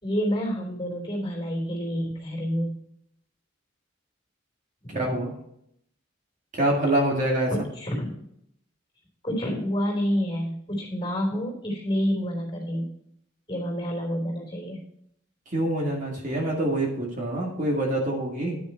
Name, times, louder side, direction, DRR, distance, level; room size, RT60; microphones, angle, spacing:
voice 1, 0.0-2.8 4.8-5.0 7.5-8.2 9.2-12.9 13.5-14.8, equal, 20° left, -1 dB, 3.2 m, -28 dB
voice 2, 4.9-5.3 6.5-7.5 15.5-18.6, right 1 dB, 35° right, -2 dB, 1.9 m, -25 dB
10.5 x 6.4 x 4.5 m, 0.73 s
head